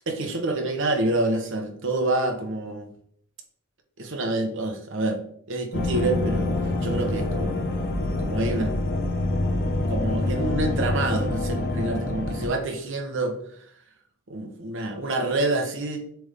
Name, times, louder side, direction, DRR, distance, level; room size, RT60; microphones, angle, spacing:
voice 1, 0.1-2.9 4.0-5.2 5.5-6.5 6.8-7.6 8.2-8.8 9.8-13.4 14.3-16.0, right 2 dB, 65° right, 3 dB, 1.1 m, -27 dB
sound 1, 5.7-12.5, left 2 dB, 50° left, 0.9 m, -26 dB
7.6 x 3.5 x 3.5 m, 0.65 s
head